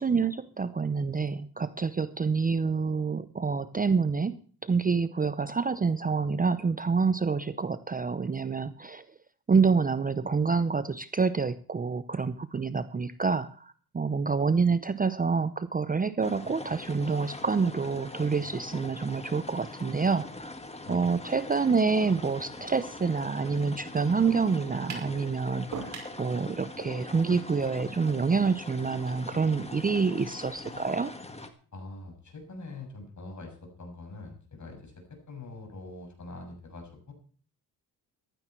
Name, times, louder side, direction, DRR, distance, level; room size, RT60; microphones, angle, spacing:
voice 1, 0.0-9.0 9.5-20.5 20.9-31.1, right 5 dB, 20° right, 13 dB, 0.7 m, -27 dB
sound 1, 16.2-31.5, left 2 dB, 15° left, 1.8 m, -42 dB
sound 2, 24.9-25.1 25.7-26.2, right 4 dB, 45° right, 5.9 m, -37 dB
voice 2, 31.7-37.1, left 2 dB, 45° left, 4 dB, 6.7 m, -44 dB
15.5 x 12.0 x 4.5 m, 0.44 s
cardioid pair, 95°, 41 cm